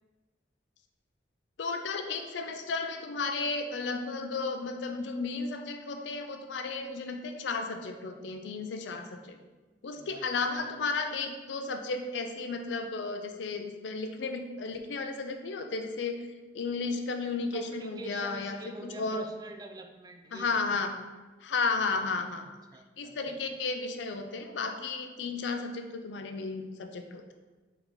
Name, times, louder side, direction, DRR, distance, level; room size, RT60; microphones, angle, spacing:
voice 1, 1.6-9.4 9.8-16.2 16.5-19.3 20.3-20.9 21.4-22.4 23.0-27.3, left 4 dB, 80° left, 6 dB, 0.4 m, -33 dB
voice 2, 10.0-10.3 17.5-20.6 21.9-23.4, right 2 dB, 20° right, 5 dB, 0.3 m, -47 dB
4.3 x 2.9 x 3.8 m, 1.2 s
head